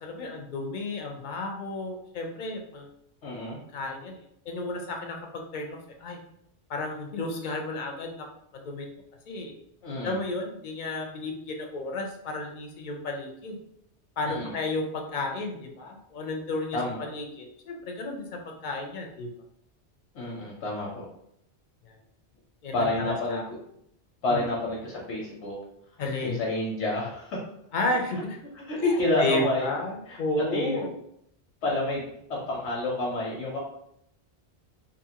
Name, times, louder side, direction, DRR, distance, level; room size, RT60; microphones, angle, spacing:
voice 1, 0.0-2.9 3.7-6.2 6.7-8.3 8.5-8.9 9.3-9.5 10.0-13.6 14.2-19.3 21.9-22.0 22.6-22.9 23.3-23.4 24.3-24.4 26.0-26.4 27.7-28.4 28.8-30.9, left 2 dB, 60° left, 2 dB, 0.5 m, -32 dB
voice 2, 3.2-3.6 9.8-10.2 14.3-14.6 16.7-17.0 20.1-21.1 22.7-23.6 24.2-25.6 26.2-27.4 28.5-29.7 30.1-30.2 30.5-30.8 31.6-33.6, left 2 dB, 90° left, -4 dB, 1.0 m, -29 dB
2.7 x 2.4 x 2.8 m, 0.74 s
omnidirectional pair, 1.1 m